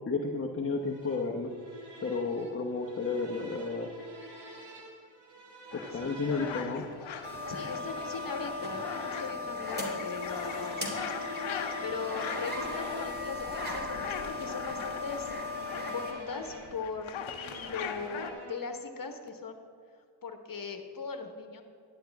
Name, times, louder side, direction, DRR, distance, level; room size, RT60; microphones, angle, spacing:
voice 1, 0.1-1.5 2.0-3.9 5.7-6.9, left 4 dB, 25° left, 1 dB, 0.9 m, -32 dB
sound 1, 0.8-18.9, right 1 dB, 55° right, 1.7 m, -48 dB
sound 2, 5.7-18.3, left 7 dB, 75° left, 0.8 m, -41 dB
voice 2, 5.9-6.9 7.5-10.9 11.8-15.3 15.9-19.6 20.2-21.6, left 4 dB, 45° left, 5 dB, 1.3 m, -40 dB
sound 3, 7.2-16.1, left 2 dB, 20° right, 2.4 m, -37 dB
11.0 x 10.0 x 3.5 m, 2.2 s
cardioid pair, 65°, 48 cm